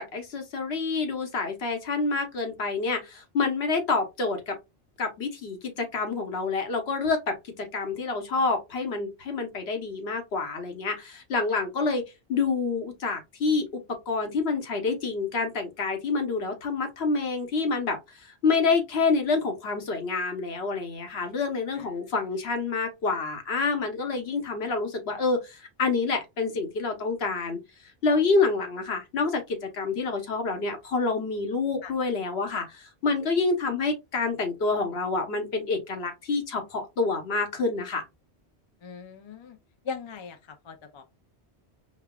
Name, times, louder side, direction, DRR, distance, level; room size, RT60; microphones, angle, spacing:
voice 1, 0.0-4.6 5.0-12.0 12.3-27.6 28.0-38.0, left 4 dB, 70° left, 1.2 m, -28 dB
voice 2, 38.8-39.6 39.8-41.0, left 5 dB, 40° left, 0.4 m, -39 dB
5.2 x 2.3 x 2.3 m
omnidirectional pair, 1.1 m